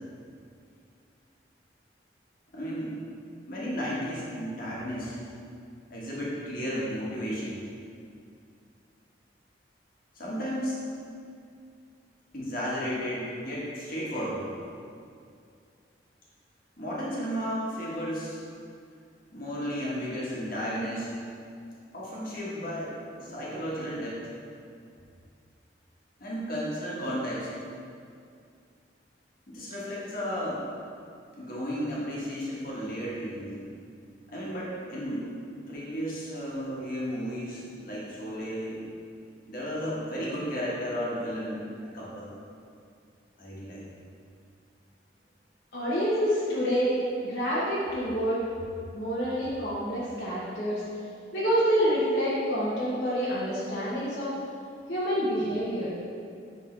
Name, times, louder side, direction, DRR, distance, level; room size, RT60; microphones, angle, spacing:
voice 1, 2.5-3.0 3.5-5.1 5.9-7.6 10.1-10.8 12.3-14.5 16.8-18.4 19.3-21.1 21.9-24.2 26.2-27.5 29.5-30.6 31.4-33.7 34.3-35.3 35.7-38.8 39.5-42.3 43.4-43.8, equal, 55° left, -6 dB, 1.5 m, -33 dB
voice 2, 45.7-46.9 47.2-48.4 48.9-50.8 51.3-54.3 54.9-55.9, equal, 70° left, -9 dB, 1.1 m, -27 dB
9.6 x 3.7 x 3.3 m, 2.4 s
head